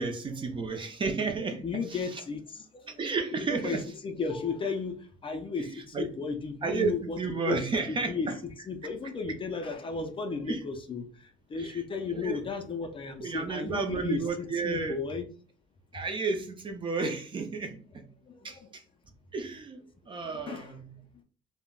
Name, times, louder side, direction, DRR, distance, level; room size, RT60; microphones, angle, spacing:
voice 1, 0.0-2.2 3.0-3.9 5.6-6.1 6.6-8.4 10.5-10.7 11.5-11.8 12.1-12.4 13.2-15.0 15.9-18.1 18.4-18.8 19.3-21.0, right 4 dB, 30° right, 0.5 m, -32 dB
voice 2, 1.6-2.9 3.6-3.8 4.0-5.7 6.0-7.2 7.5-7.6 7.9-8.3 8.7-15.2 18.3-18.7 20.3-20.7, left 5 dB, 30° left, 0.4 m, -34 dB
2.1 x 2.1 x 3.6 m
cardioid pair, 110°, 17 cm